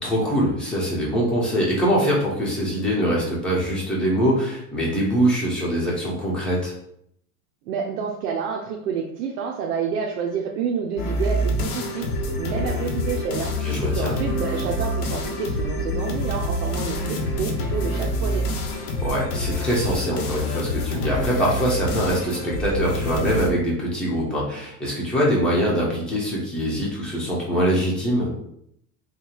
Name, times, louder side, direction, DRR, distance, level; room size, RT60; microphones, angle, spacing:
voice 1, 0.0-6.7 13.6-14.1 19.0-28.3, equal, ahead, -6 dB, 1.1 m, -23 dB
voice 2, 7.7-12.1 12.4-13.5 13.8-18.5, right 6 dB, 85° right, 0 dB, 0.7 m, -29 dB
sound 1, 11.0-23.5, left 1 dB, 90° left, 1.1 m, -26 dB
3.6 x 2.4 x 4.4 m, 0.72 s
supercardioid pair, 140°, 46 cm